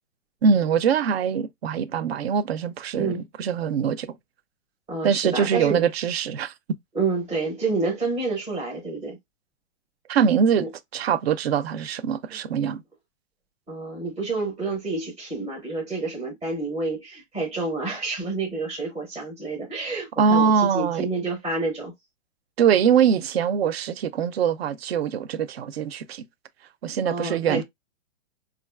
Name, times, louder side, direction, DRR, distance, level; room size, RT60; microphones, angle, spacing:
voice 1, 0.4-4.1 5.0-6.5 10.1-10.7 10.9-12.8 20.2-21.1 22.6-26.2 26.8-27.6, right 7 dB, 55° right, 0.4 m, -23 dB
voice 2, 4.9-5.8 6.9-9.2 10.6-10.7 13.7-21.9 27.0-27.6, right 3 dB, 10° right, 0.6 m, -28 dB
5.0 x 2.4 x 2.2 m
hypercardioid pair, 165°, 39 cm